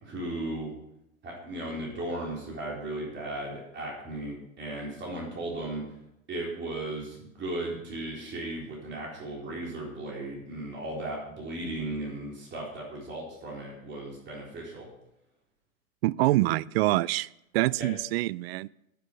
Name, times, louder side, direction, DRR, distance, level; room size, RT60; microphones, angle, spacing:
voice 1, 0.0-0.7 1.2-5.8 6.3-14.9 17.8-17.9, right 1 dB, 25° right, -3 dB, 4.0 m, -36 dB
voice 2, 16.0-17.3 17.5-18.7, right 17 dB, 50° right, 21 dB, 0.4 m, -25 dB
10.0 x 9.2 x 6.3 m, 0.83 s
hypercardioid pair, 105°, 41 cm